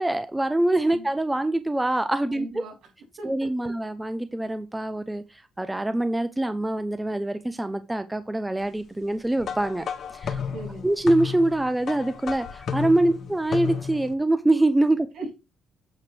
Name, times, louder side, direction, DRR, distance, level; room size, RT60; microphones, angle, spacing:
voice 1, 0.0-2.6 3.2-9.8 10.1-10.4 10.8-15.1, right 1 dB, 10° right, 11 dB, 0.6 m, -24 dB
voice 2, 2.2-2.7 3.2-3.7 10.5-10.9 15.2-15.4, right 2 dB, 75° right, 0 dB, 5.4 m, -38 dB
sound 1, 9.4-14.1, left 7 dB, 60° left, 1.1 m, -33 dB
8.8 x 3.2 x 6.2 m, 0.27 s
cardioid pair, 90°, 0 cm